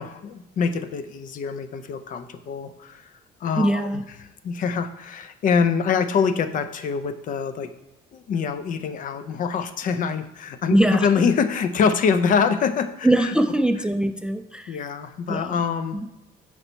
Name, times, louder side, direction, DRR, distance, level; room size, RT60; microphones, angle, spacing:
voice 1, 0.0-3.0 3.4-4.0 4.4-7.7 8.1-13.3 14.7-16.0, left 6 dB, 50° left, 11 dB, 0.5 m, -25 dB
voice 2, 3.6-4.0 10.7-11.3 13.0-14.8 15.3-15.6 15.9-16.1, right 1 dB, 5° right, 9 dB, 0.3 m, -22 dB
5.9 x 4.4 x 4.0 m, 1.0 s
cardioid pair, 110°, 17 cm